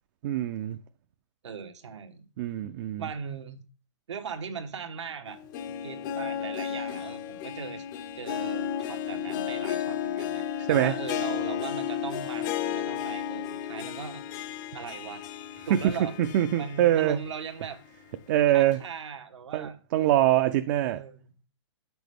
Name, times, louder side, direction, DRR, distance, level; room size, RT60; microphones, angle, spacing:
voice 1, 0.2-0.8 2.4-3.1 10.7-10.9 15.7-15.9 16.2-17.2 18.3-18.8 19.5-21.0, right 12 dB, 40° right, 0.4 m, -24 dB
voice 2, 1.4-2.2 3.0-3.6 4.1-5.4 5.7-7.8 8.1-14.2 14.7-15.2 15.7-16.1 16.6-17.8 18.5-19.8 20.7-21.3, right 6 dB, 85° right, 1.2 m, -39 dB
Harp, 5.3-17.4 17.8-17.9 18.7-18.8, left 9 dB, 45° left, 0.6 m, -33 dB
7.5 x 6.1 x 3.5 m
hypercardioid pair, 150°, 15 cm